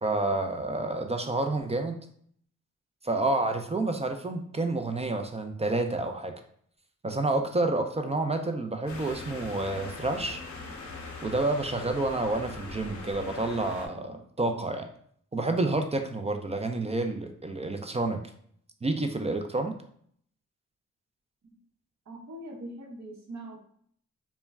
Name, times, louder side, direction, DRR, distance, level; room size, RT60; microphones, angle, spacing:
voice 1, 0.0-2.0 3.0-6.3 7.0-10.4 11.2-14.9 15.3-18.2 18.8-19.7, right 2 dB, 20° right, 5 dB, 0.3 m, -29 dB
sound 1, 8.9-13.9, left 3 dB, 65° left, 0.6 m, -41 dB
voice 2, 22.1-23.6, right 1 dB, 60° right, -2 dB, 0.8 m, -42 dB
2.1 x 2.1 x 3.4 m, 0.62 s
cardioid pair, 45°, 31 cm